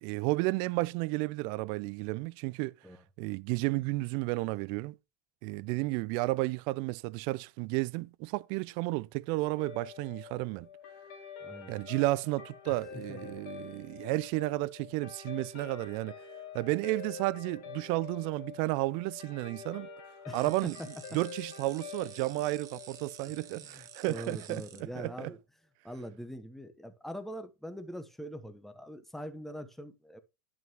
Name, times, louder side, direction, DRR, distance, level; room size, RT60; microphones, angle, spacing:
voice 1, 0.0-2.7 3.2-5.0 5.4-10.7 11.7-16.1 16.5-19.9 20.3-20.8 21.1-25.3, right 21 dB, 50° right, 0.4 m, -32 dB
Guitar, 9.6-24.1, left 7 dB, 60° left, 2.3 m, -47 dB
voice 2, 11.4-11.8 12.9-13.2 20.2-20.7 23.2-25.4 25.8-30.2, equal, ahead, 0.9 m, -43 dB
sound 1, 20.3-24.8, right 9 dB, 35° right, 1.2 m, -51 dB
10.5 x 6.1 x 2.9 m
hypercardioid pair, 90°, 10 cm